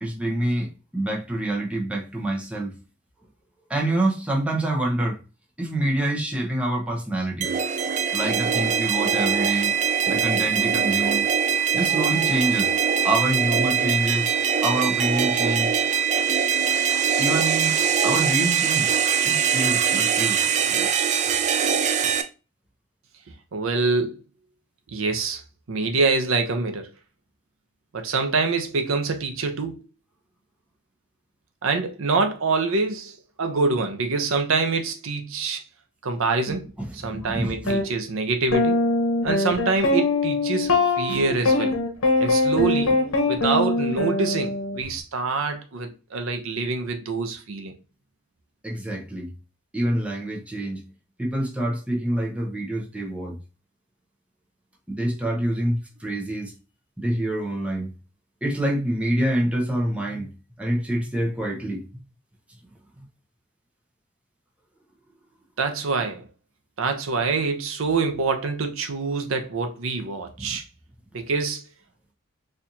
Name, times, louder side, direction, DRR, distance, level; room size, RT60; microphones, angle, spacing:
voice 1, 0.0-2.7 3.7-5.2 5.6-7.5 8.1-9.7 10.1-11.2 11.7-12.7 13.0-14.3 14.6-15.7 17.2-17.8 18.0-18.9 19.2-20.9 36.8-37.8 41.1-41.2 48.6-49.3 49.7-50.8 51.2-53.4 54.9-56.5 57.0-57.9 58.4-60.3 60.6-61.8 70.4-70.6, right 1 dB, 5° right, 0.7 m, -26 dB
sound 1, 7.4-22.2, right 7 dB, 35° right, 0.3 m, -22 dB
voice 2, 23.5-24.2 24.9-25.4 25.7-26.9 27.9-29.8 31.6-35.6 36.0-36.6 36.9-38.8 39.2-41.8 42.2-43.0 43.3-47.7 65.6-66.3 66.8-70.6 71.1-71.6, right 4 dB, 85° right, 0.6 m, -25 dB
sound 2, 37.7-37.8 38.5-44.8, left 2 dB, 80° left, 0.8 m, -22 dB
4.2 x 2.5 x 2.7 m
head